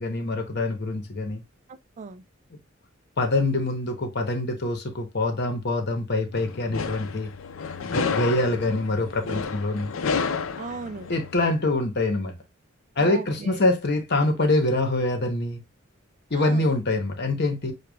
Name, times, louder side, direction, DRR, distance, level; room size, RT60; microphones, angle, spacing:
voice 1, 0.0-1.4 3.2-7.3 7.8-9.9 11.1-12.3 13.0-15.6 16.3-17.7, left 2 dB, 55° left, 0.9 m, -25 dB
voice 2, 1.7-2.2 10.6-11.1 13.0-13.6 16.3-16.7, right 5 dB, 35° right, 0.3 m, -37 dB
sound 1, 6.3-11.5, left 5 dB, 80° left, 0.5 m, -31 dB
6.6 x 2.3 x 2.3 m
head